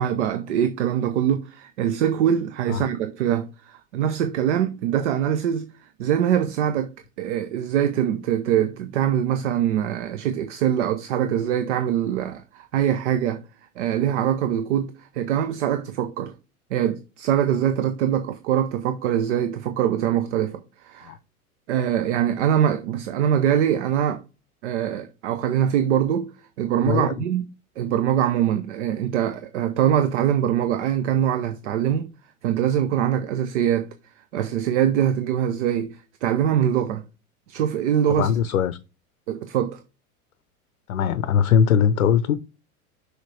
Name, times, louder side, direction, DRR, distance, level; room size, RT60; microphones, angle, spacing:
voice 1, 0.0-5.7 6.0-6.9 7.2-13.4 13.8-16.3 16.7-21.1 21.7-24.2 24.6-27.5 27.8-32.1 32.4-33.9 34.3-37.0 37.5-38.3 39.3-39.8, right 10 dB, 50° right, 0.9 m, -23 dB
voice 2, 38.2-38.8 40.9-42.4, left 8 dB, 65° left, 0.6 m, -20 dB
6.5 x 5.2 x 4.7 m
figure-of-eight pair, 85°, 44 cm